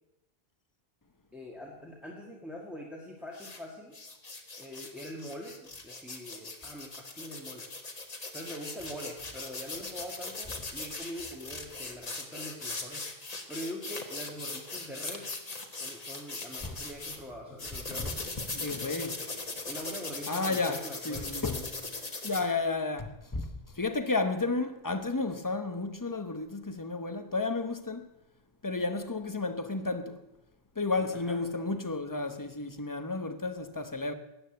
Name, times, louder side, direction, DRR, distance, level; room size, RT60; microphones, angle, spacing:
voice 1, 1.3-4.0 4.6-7.7 8.0-8.1 8.3-13.0 13.5-18.3 19.6-21.3 31.2-31.4, equal, ahead, 1.8 m, -43 dB
sound 1, 3.3-3.6 3.9-17.2 17.6-22.4, left 3 dB, 40° left, 1.5 m, -40 dB
voice 2, 18.5-19.3 20.3-21.8 22.2-28.1 28.6-30.2 30.8-34.1, left 3 dB, 20° left, 0.9 m, -32 dB
13.5 x 9.2 x 7.9 m
omnidirectional pair, 1.0 m